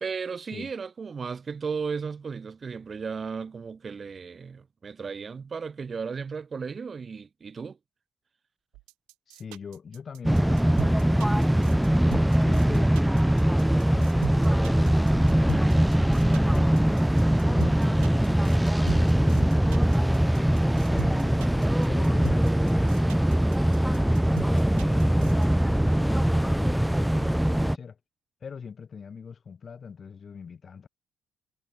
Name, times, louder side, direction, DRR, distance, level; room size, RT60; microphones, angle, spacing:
voice 1, 0.0-7.8, right 5 dB, 40° right, 2.1 m, -35 dB
sound 1, 8.7-25.5, right 24 dB, 75° right, 0.5 m, -39 dB
voice 2, 9.3-11.7 12.0-12.9 13.9-16.8 17.5-22.9 23.6-28.0 28.4-30.9, left 6 dB, 45° left, 1.9 m, -42 dB
sound 2, 10.2-27.8, right 1 dB, 5° right, 0.4 m, -22 dB
hypercardioid pair, 50°, 0 cm